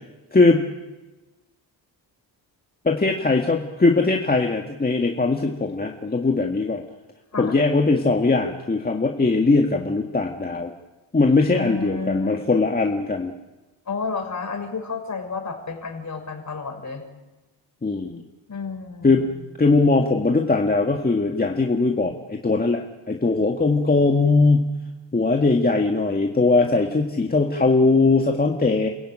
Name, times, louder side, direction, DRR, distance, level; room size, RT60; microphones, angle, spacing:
voice 1, 0.3-0.7 2.8-6.8 7.4-10.7 11.1-13.3 17.8-18.2 19.0-19.3 19.6-24.7 25.1-28.9, left 3 dB, 20° left, 1 dB, 1.9 m, -20 dB
voice 2, 11.5-12.3 13.9-17.0 18.5-19.3, left 4 dB, 40° left, 4 dB, 5.6 m, -31 dB
29.0 x 15.0 x 8.9 m, 1.1 s
cardioid pair, 95°, 44 cm